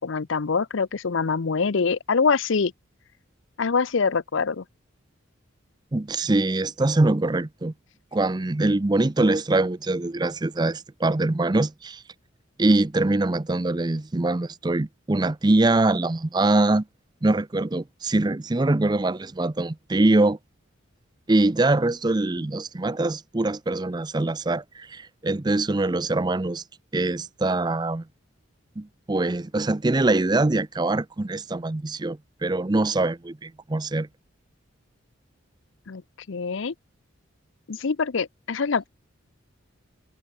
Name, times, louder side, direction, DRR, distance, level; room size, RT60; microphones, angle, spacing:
voice 1, 0.0-2.7 3.6-4.6 35.9-36.0 36.3-36.7 37.7-38.9, left 5 dB, 65° left, 0.6 m, -24 dB
voice 2, 5.9-7.7 8.1-12.0 12.6-16.8 17.2-20.4 21.3-26.6 26.9-28.0 28.8-34.1, right 2 dB, 20° right, 0.5 m, -23 dB
head